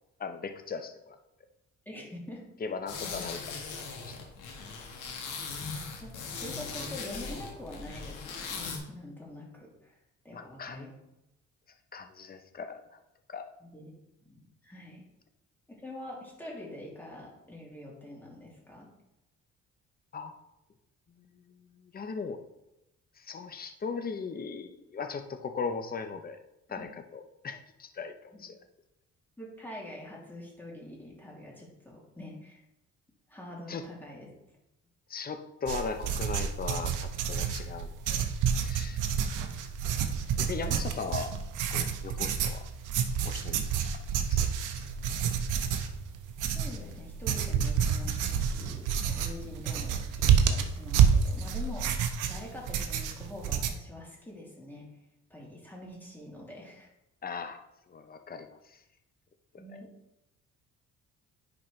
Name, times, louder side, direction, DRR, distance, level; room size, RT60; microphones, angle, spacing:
voice 1, 0.2-1.2 2.6-3.6 4.1-4.2 10.3-10.9 11.9-13.0 13.3-13.5 20.1-20.3 21.5-21.6 21.9-22.4 23.2-26.4 26.7-28.6 33.7-33.8 35.1-38.3 38.6-39.0 40.4-41.3 41.7-42.6 43.2-43.9 44.3-44.5 44.7-44.8 57.2-57.6 57.9-58.8 59.5-59.6, left 5 dB, 30° left, 7 dB, 0.8 m, -38 dB
voice 2, 1.9-2.5 6.0-10.0 10.2-10.9 13.6-13.9 14.2-15.0 15.7-18.9 26.8-26.9 28.3-28.4 29.4-32.6 33.3-34.3 46.5-52.0 52.3-55.0 55.3-56.9 59.6-60.0, left 1 dB, 5° left, -4 dB, 2.7 m, -45 dB
sound 1, 2.9-8.8, left 4 dB, 80° left, 1.5 m, -39 dB
sound 2, 35.7-53.7, right 7 dB, 85° right, 0.8 m, -29 dB
10.0 x 4.3 x 3.2 m, 0.91 s
cardioid pair, 90°, 30 cm